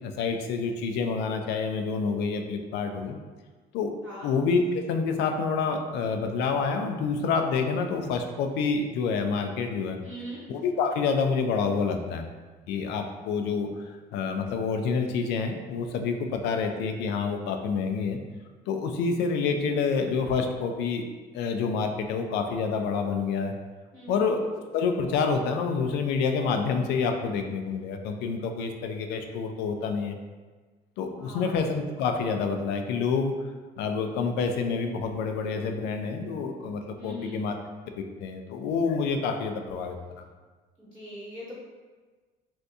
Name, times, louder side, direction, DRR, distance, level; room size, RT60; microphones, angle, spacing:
voice 1, 0.0-3.2 3.7-3.9 4.2-10.0 10.5-12.3 12.7-13.7 14.1-18.2 18.7-21.0 21.3-23.5 24.1-24.4 24.7-30.2 31.0-33.3 33.8-37.5 38.0-40.0, left 5 dB, 85° left, 5 dB, 0.4 m, -28 dB
voice 2, 10.0-10.4 23.9-24.2 31.2-31.5 37.0-37.4 40.8-41.5, equal, 5° right, -10 dB, 1.0 m, -41 dB
2.7 x 2.6 x 3.4 m, 1.4 s
cardioid pair, 110°, 17 cm